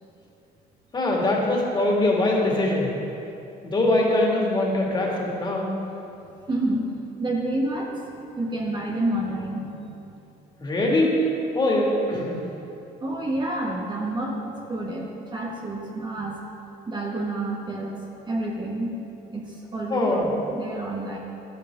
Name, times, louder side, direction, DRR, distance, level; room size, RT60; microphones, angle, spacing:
voice 1, 0.9-2.9 3.6-5.7 10.6-11.1 11.5-12.4 19.9-20.3, left 2 dB, 25° left, -2 dB, 2.3 m, -22 dB
voice 2, 6.5-8.0 8.4-9.9 13.0-16.4 16.9-18.0 18.2-19.0 19.3-20.3 20.5-21.2, right 1 dB, 25° right, -1 dB, 1.3 m, -29 dB
11.5 x 11.5 x 3.8 m, 2.8 s
cardioid pair, 110°, 17 cm